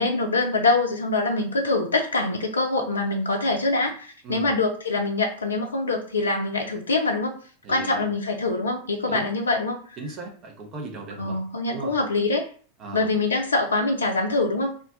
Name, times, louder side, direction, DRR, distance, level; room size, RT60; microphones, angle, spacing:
voice 1, 0.0-7.4 7.7-10.0 11.2-12.5 12.9-14.8, left 3 dB, 75° left, 2 dB, 0.4 m, -24 dB
voice 2, 7.6-8.1 9.1-9.3 10.0-11.4 11.7-12.0 12.8-13.2, right 3 dB, 35° right, 0 dB, 0.8 m, -37 dB
2.4 x 2.2 x 3.7 m, 0.43 s
figure-of-eight pair, 90°, 0 cm